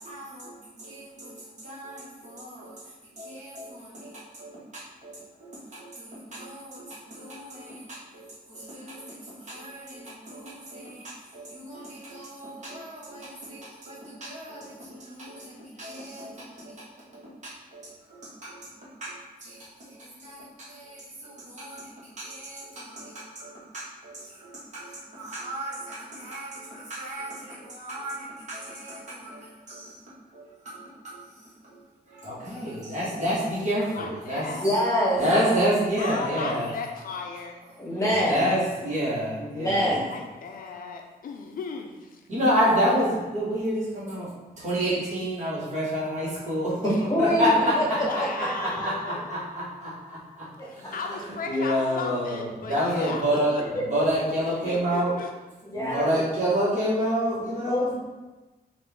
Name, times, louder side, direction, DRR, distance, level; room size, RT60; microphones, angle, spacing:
voice 1, 0.0-1.3 1.6-2.7 3.2-4.6 5.0-7.9 8.1-16.8 17.1-17.3 17.7-17.8 18.1-18.6 19.0-19.6 19.9-29.9 30.3-31.2 31.6-31.8 32.1-34.4 35.2-36.7 38.2-39.9 42.3-44.3 44.6-46.9 47.2-53.5 53.9-55.1 55.7-57.9, equal, 50° right, -8 dB, 1.5 m, -29 dB
voice 2, 33.7-34.7 36.0-37.6 37.8-38.3 40.1-42.2 48.0-49.3 50.6-53.2 53.5-53.6 54.5-55.3, left 4 dB, 65° left, 3 dB, 0.4 m, -36 dB
voice 3, 34.6-35.3 37.8-38.5 39.4-40.1 46.8-48.3 48.6-48.9 50.6-50.9 53.0-53.1 53.7-54.1 55.6-56.2 57.7-57.9, equal, 20° left, -5 dB, 1.0 m, -26 dB
3.9 x 2.5 x 3.5 m, 1.2 s
wide cardioid pair, 160°, 16 cm